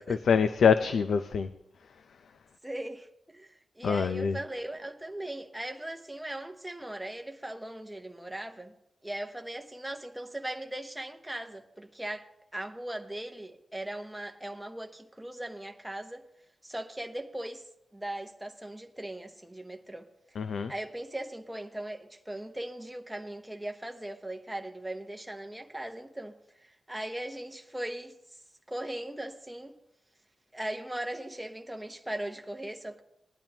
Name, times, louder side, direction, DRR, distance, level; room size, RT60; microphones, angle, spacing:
voice 1, 0.1-1.5 3.8-4.4 20.4-20.7, left 6 dB, 70° left, 0.5 m, -25 dB
voice 2, 2.6-8.7 9.0-12.3 12.5-16.3 16.6-17.7 17.9-20.1 20.7-28.2 28.7-29.8 30.5-33.0, right 1 dB, 5° right, 0.8 m, -39 dB
19.5 x 10.5 x 2.9 m
wide cardioid pair, 140°, 0 cm